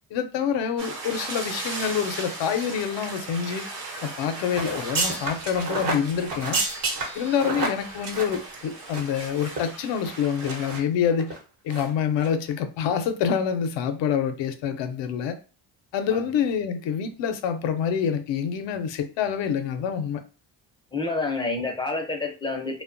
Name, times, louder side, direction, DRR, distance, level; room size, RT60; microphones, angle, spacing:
voice 1, 0.1-3.6 4.0-6.6 7.2-11.3 11.6-15.3 15.9-20.2, left 7 dB, 80° left, 0.5 m, -26 dB
sound 1, 0.8-10.8, right 3 dB, 90° right, 1.0 m, -38 dB
sound 2, 4.5-9.2 9.5-9.6 10.1-10.8 11.2-11.4 11.7-11.9 12.2-12.3, right 3 dB, 50° right, 0.9 m, -30 dB
voice 2, 20.9-22.8, left 3 dB, 10° left, 0.4 m, -28 dB
2.7 x 2.1 x 2.5 m
cardioid pair, 110°, 44 cm